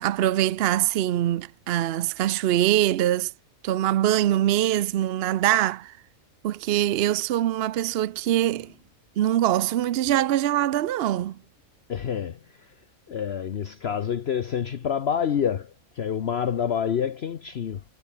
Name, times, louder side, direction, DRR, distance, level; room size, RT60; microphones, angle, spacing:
voice 1, 0.0-3.3 3.6-5.9 6.4-8.7 9.2-11.4, right 12 dB, 60° right, 0.7 m, -23 dB
voice 2, 11.9-12.7 13.1-17.8, left 8 dB, 55° left, 1.1 m, -28 dB
omnidirectional pair, 1.4 m